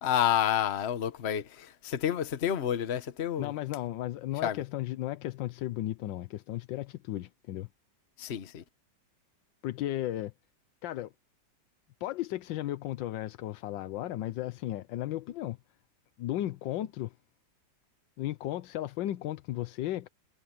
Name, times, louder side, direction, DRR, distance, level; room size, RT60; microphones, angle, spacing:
voice 1, 0.0-3.5 4.4-4.6 8.2-8.6, left 9 dB, 40° left, 1.2 m, -29 dB
voice 2, 3.4-7.7 9.6-10.3 10.8-11.1 12.0-15.6 16.2-17.1 18.2-20.1, left 14 dB, 85° left, 1.4 m, -35 dB
omnidirectional pair, 2.0 m